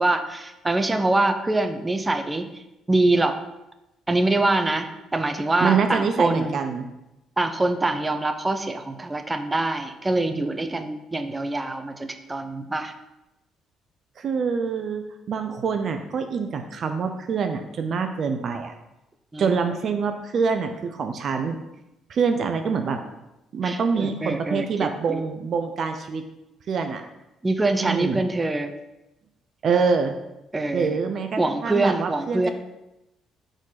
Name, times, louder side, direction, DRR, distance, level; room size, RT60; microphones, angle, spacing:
voice 1, 0.0-3.4 4.1-6.5 7.4-12.9 19.3-19.6 23.6-25.2 27.4-28.7 30.5-31.0 31.4-32.5, right 2 dB, 20° right, 7 dB, 0.7 m, -24 dB
voice 2, 5.6-6.9 14.2-18.7 19.4-21.6 22.1-23.0 23.5-26.2 26.7-27.0 27.8-28.2 29.6-30.1 30.7-32.5, right 5 dB, 55° right, 6 dB, 0.6 m, -25 dB
5.0 x 3.9 x 5.7 m, 0.94 s
supercardioid pair, 60°, 0 cm